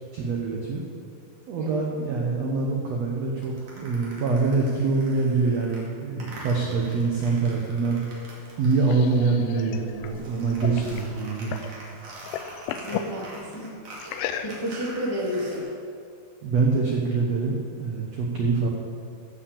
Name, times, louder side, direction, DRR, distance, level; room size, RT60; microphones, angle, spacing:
voice 1, 0.1-0.8 1.5-8.0 8.6-11.5 16.4-18.7, right 4 dB, 70° right, -1 dB, 1.6 m, -25 dB
sound 1, 3.4-9.4 9.7-15.6, right 1 dB, 50° right, 3.5 m, -44 dB
sound 2, 8.4-11.8 12.1-13.1 14.0-14.9, left 9 dB, 80° left, 2.5 m, -35 dB
voice 2, 12.7-13.8 14.0-15.7, equal, 15° left, -5 dB, 1.0 m, -32 dB
15.0 x 5.8 x 6.9 m, 2.2 s
omnidirectional pair, 4.5 m